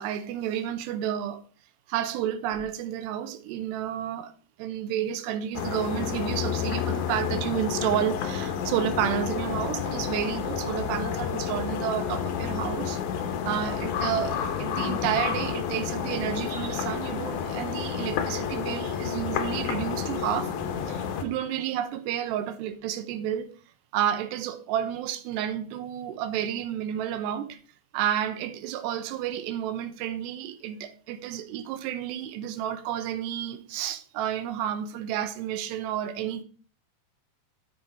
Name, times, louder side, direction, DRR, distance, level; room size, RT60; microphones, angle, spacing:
voice 1, 0.0-1.4 1.9-4.3 4.6-13.0 13.5-20.5 20.9-23.5 23.9-27.6 27.9-36.4, right 10 dB, 85° right, 2.9 m, -31 dB
sound 1, 5.5-21.2, left 7 dB, 75° left, 1.8 m, -30 dB
8.3 x 6.4 x 4.2 m
omnidirectional pair, 4.7 m